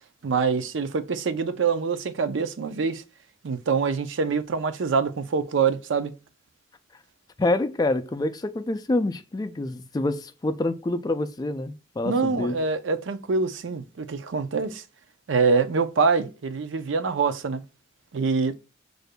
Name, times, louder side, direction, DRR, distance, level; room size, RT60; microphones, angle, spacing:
voice 1, 0.2-3.0 3.4-6.1 12.0-14.8 15.3-17.6 18.1-18.5, right 5 dB, 90° right, 0.5 m, -25 dB
voice 2, 7.4-12.6, left 2 dB, 20° left, 0.3 m, -27 dB
6.5 x 2.5 x 2.2 m
head